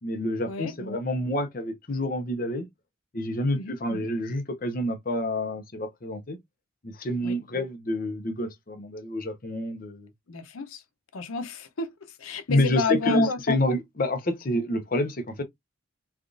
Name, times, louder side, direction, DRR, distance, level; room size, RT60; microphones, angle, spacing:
voice 1, 0.0-2.7 3.1-6.4 6.8-10.1 12.5-15.4, left 1 dB, 40° left, 0.7 m, -28 dB
voice 2, 10.3-10.8 11.1-13.4, left 5 dB, 85° left, 0.6 m, -31 dB
3.4 x 2.4 x 2.5 m
head